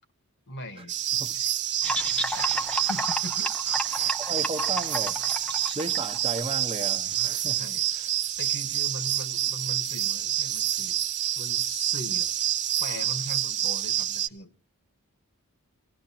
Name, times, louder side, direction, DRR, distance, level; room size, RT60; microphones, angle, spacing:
voice 1, 0.5-0.9 1.4-1.5 2.3-2.5 2.9-3.5 7.6-7.8 8.4-11.0 11.4-12.3 12.8-14.5, equal, 55° left, 10 dB, 1.4 m, -39 dB
sound 1, 0.9-14.3, right 11 dB, 55° right, 0.9 m, -28 dB
sound 2, 1.8-6.5, equal, 5° left, 0.9 m, -32 dB
voice 2, 4.2-5.2 5.7-7.6 7.9-8.1, right 2 dB, 25° right, 4 dB, 1.0 m, -34 dB
25.5 x 17.5 x 2.8 m, 0.36 s
head